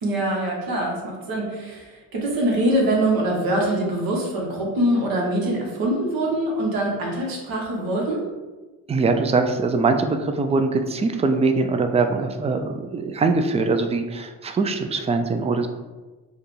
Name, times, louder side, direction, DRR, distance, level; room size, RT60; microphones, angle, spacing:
voice 1, 0.0-8.2, right 1 dB, 75° right, -2 dB, 1.2 m, -24 dB
voice 2, 8.9-15.7, right 3 dB, 20° right, 6 dB, 0.3 m, -22 dB
4.6 x 2.3 x 3.2 m, 1.2 s
cardioid pair, 85°, 37 cm